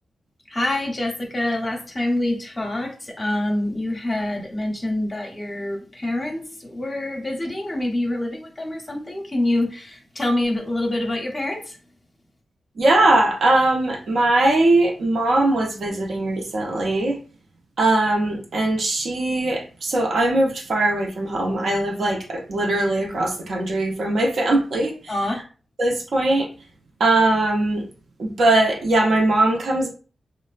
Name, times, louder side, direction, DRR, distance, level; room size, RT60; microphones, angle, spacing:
voice 1, 0.5-11.8 25.1-25.4, left 1 dB, 25° left, 0.7 m, -26 dB
voice 2, 12.8-17.2 17.8-25.1 25.8-26.5 27.0-27.8 28.2-29.9, right 2 dB, 70° right, 0.6 m, -20 dB
3.2 x 2.0 x 2.4 m
wide cardioid pair, 105°, 0 cm